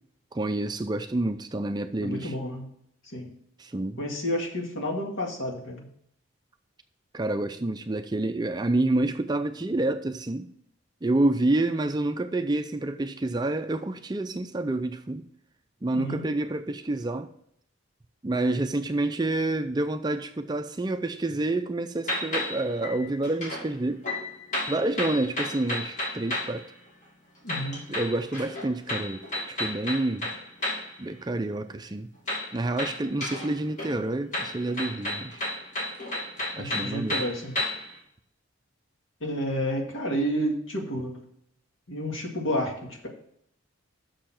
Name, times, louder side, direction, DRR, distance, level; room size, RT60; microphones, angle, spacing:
voice 1, 0.3-2.3 3.6-4.0 7.1-10.5 11.0-15.2 15.8-17.3 18.2-24.0 24.7-26.7 27.9-30.3 31.0-32.1 32.5-35.4 36.6-37.2, right 2 dB, 20° right, 0.4 m, -28 dB
voice 2, 2.0-2.6 3.0-3.3 4.0-5.9 15.9-16.2 27.4-27.8 36.6-37.6 39.2-41.2 41.9-43.1, equal, 75° left, 2.0 m, -30 dB
sound 1, 22.1-23.7 24.0-26.6 27.5-30.9 32.3-33.5 33.8-37.9, left 1 dB, 35° left, 2.3 m, -32 dB
6.8 x 6.3 x 5.9 m
head